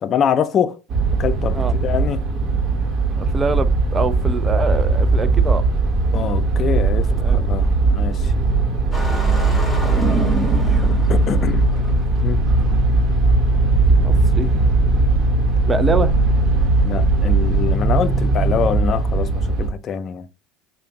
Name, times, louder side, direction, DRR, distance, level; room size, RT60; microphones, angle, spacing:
voice 1, 0.0-0.8 1.2-2.2 6.1-8.3 10.8-11.7 12.2-12.4 16.8-20.3, left 7 dB, 45° left, 0.5 m, -24 dB
sound 1, 0.9-19.7, right 3 dB, 45° right, 1.1 m, -18 dB
voice 2, 3.2-5.7 7.1-7.6 10.1-10.9 13.7-14.5 15.6-16.2, right 4 dB, 25° right, 0.5 m, -25 dB
Engine starting, 8.9-11.9, right 1 dB, 5° left, 1.4 m, -26 dB
5.0 x 2.2 x 2.7 m
hypercardioid pair, 80°, 0 cm